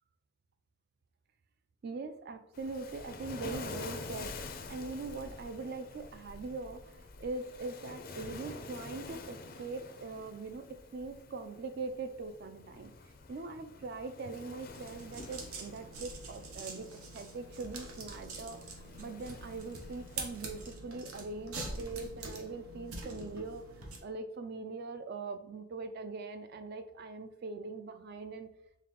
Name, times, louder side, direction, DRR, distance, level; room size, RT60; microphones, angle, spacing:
voice 1, 1.8-12.9 13.3-28.5, right 3 dB, 45° right, 9 dB, 0.3 m, -42 dB
Waves surf, 2.5-20.7, left 3 dB, 40° left, 0.4 m, -48 dB
sound 1, 14.7-24.0, right 2 dB, 80° right, 0.8 m, -45 dB
3.9 x 3.7 x 2.9 m, 0.82 s
head